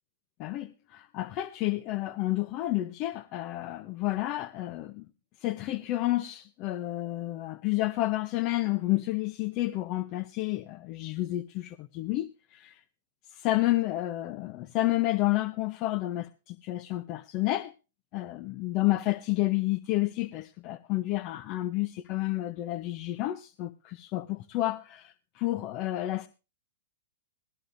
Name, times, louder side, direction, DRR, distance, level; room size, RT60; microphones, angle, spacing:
voice 1, 0.4-5.1 5.4-12.8 13.3-17.7 18.1-26.3, left 17 dB, 40° left, 0.6 m, -30 dB
19.0 x 13.0 x 2.5 m
hypercardioid pair, 125°, 0 cm